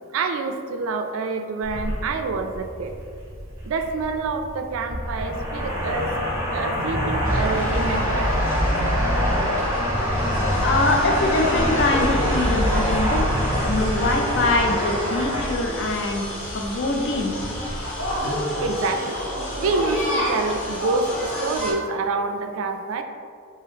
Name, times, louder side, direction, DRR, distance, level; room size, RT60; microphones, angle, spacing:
voice 1, 0.1-2.9 3.6-6.1 6.5-8.4 18.6-19.2 19.6-23.0, right 3 dB, 65° right, 6 dB, 0.3 m, -27 dB
sound 1, 1.6-18.2, equal, 10° right, 0.8 m, -25 dB
sound 2, 7.2-21.7, equal, 70° left, 1.2 m, -30 dB
voice 2, 10.6-16.3 16.5-17.4, left 2 dB, 55° left, 2 dB, 0.4 m, -23 dB
3.5 x 2.7 x 3.5 m, 2.2 s
head